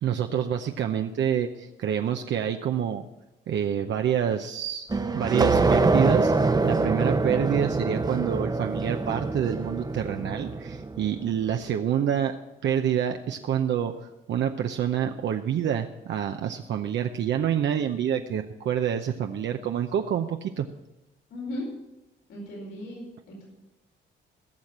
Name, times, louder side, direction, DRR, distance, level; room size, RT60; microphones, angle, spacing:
voice 1, 0.0-3.1 3.5-4.9 5.1-6.3 6.6-12.4 12.6-20.7, right 9 dB, 65° right, 5 dB, 0.7 m, -27 dB
sound 1, 4.9-11.3, right 3 dB, 20° right, 0.8 m, -25 dB
voice 2, 21.3-21.7 22.3-23.5, left 1 dB, 80° left, -2 dB, 4.8 m, -37 dB
16.0 x 6.5 x 7.3 m, 0.97 s
cardioid pair, 90°, 20 cm